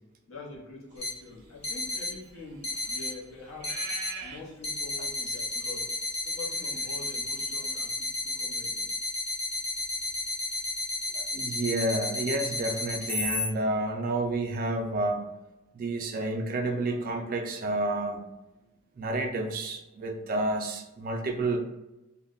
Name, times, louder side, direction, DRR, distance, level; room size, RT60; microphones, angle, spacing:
voice 1, 0.3-3.8 4.2-6.0 6.2-8.9, left 3 dB, 65° left, -4 dB, 0.8 m, -45 dB
sound 1, 1.0-1.1 1.6-2.1 2.6-3.1 3.6-4.1 4.6-13.5, left 2 dB, 25° left, 0.6 m, -32 dB
sound 2, 1.0-7.8, right 5 dB, 85° right, 0.5 m, -46 dB
voice 2, 11.1-15.2 15.7-18.2 19.0-21.6, right 2 dB, 40° right, 3 dB, 0.3 m, -30 dB
2.2 x 2.0 x 3.6 m, 0.98 s
head